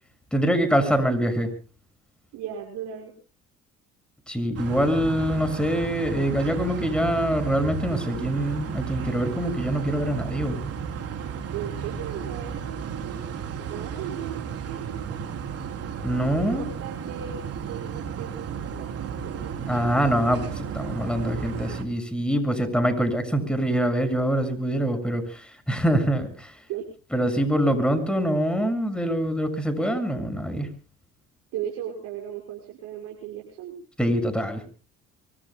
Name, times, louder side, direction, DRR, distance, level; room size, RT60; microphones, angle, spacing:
voice 1, 0.3-1.5 4.3-10.6 16.0-16.7 19.7-26.6 27.1-30.7 34.0-34.6, equal, 5° left, 7 dB, 7.0 m, -24 dB
voice 2, 2.3-3.1 11.5-13.2 13.6-15.1 16.3-19.6 26.7-26.9 31.5-33.7, right 10 dB, 75° right, -1 dB, 6.2 m, -37 dB
sound 1, 4.5-21.8, right 7 dB, 55° right, 3.7 m, -33 dB
25.5 x 24.5 x 2.3 m, 0.38 s
supercardioid pair, 80°, 29 cm